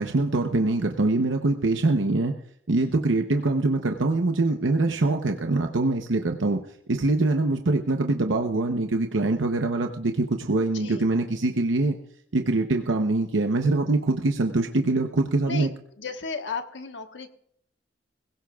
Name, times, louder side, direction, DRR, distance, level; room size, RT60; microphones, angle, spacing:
voice 1, 0.0-2.3 2.7-6.6 6.9-12.0 12.3-15.7, right 2 dB, 85° right, 4 dB, 0.8 m, -24 dB
voice 2, 10.7-11.1 15.4-15.7 16.0-17.3, left 5 dB, 70° left, 6 dB, 1.3 m, -34 dB
21.5 x 16.5 x 2.4 m, 0.67 s
head